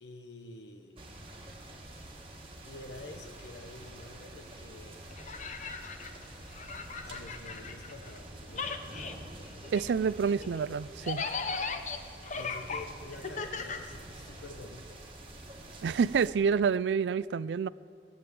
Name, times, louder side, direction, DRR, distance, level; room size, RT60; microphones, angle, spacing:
voice 1, 0.0-1.1 2.7-5.1 7.1-9.9 12.3-15.0, left 2 dB, 80° left, 6 dB, 0.9 m, -48 dB
sound 1, 1.0-16.3, right 1 dB, 30° right, 1.7 m, -47 dB
sound 2, 5.1-8.2 8.5-14.5, left 4 dB, 45° left, 0.7 m, -38 dB
voice 2, 9.7-11.2 15.8-17.7, right 6 dB, 80° right, 19 dB, 0.3 m, -28 dB
18.5 x 8.7 x 7.7 m, 2.4 s
head